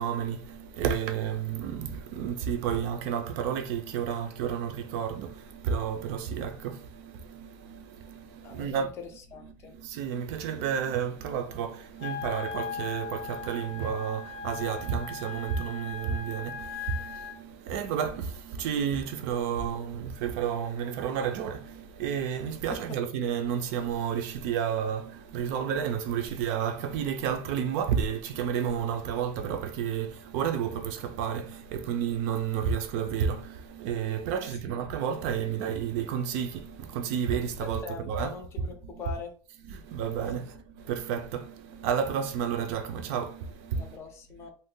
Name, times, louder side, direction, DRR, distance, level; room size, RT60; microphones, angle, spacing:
voice 1, 0.0-8.9 9.4-38.4 38.8-39.0 39.6-44.0, right 8 dB, 60° right, 0.5 m, -31 dB
voice 2, 8.4-8.9 9.3-9.7 22.7-22.8 34.3-34.4 34.7-34.8 37.6-39.3 43.8-44.5, left 4 dB, 30° left, 0.5 m, -41 dB
Wind instrument woodwind instrument, 12.0-17.4, left 6 dB, 75° left, 0.7 m, -38 dB
2.6 x 2.3 x 3.7 m
cardioid pair, 175°, 9 cm